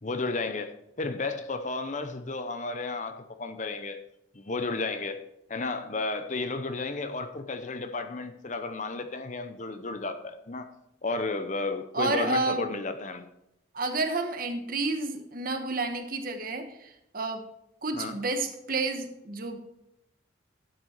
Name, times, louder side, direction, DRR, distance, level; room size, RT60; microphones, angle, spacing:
voice 1, 0.0-4.0 4.3-5.2 5.5-10.7 11.0-13.3 17.9-18.2, left 3 dB, 40° left, 0.7 m, -33 dB
voice 2, 11.9-12.6 13.7-17.4 17.8-19.6, right 3 dB, 45° right, 1.2 m, -30 dB
12.0 x 7.5 x 4.4 m
head